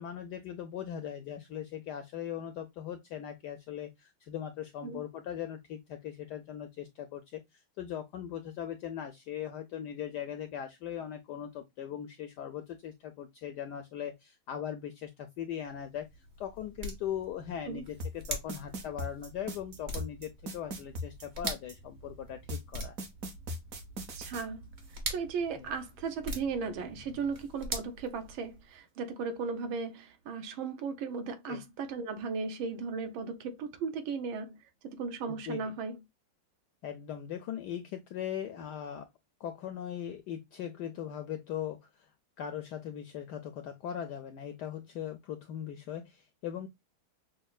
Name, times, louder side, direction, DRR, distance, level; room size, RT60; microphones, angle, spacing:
voice 1, 0.0-16.1 16.4-22.9 25.6-25.7 31.5-31.6 35.3-35.6 36.8-39.1 39.4-42.1 42.4-46.7, left 10 dB, 75° left, 0.9 m, -39 dB
sound 1, 15.6-28.8, right 1 dB, 40° right, 1.2 m, -43 dB
sound 2, 18.0-21.7 22.5-24.4, equal, 55° right, 1.0 m, -38 dB
voice 2, 24.2-24.6 25.1-34.6 34.8-36.0, right 5 dB, 75° right, 1.5 m, -36 dB
6.3 x 2.1 x 2.2 m
omnidirectional pair, 2.3 m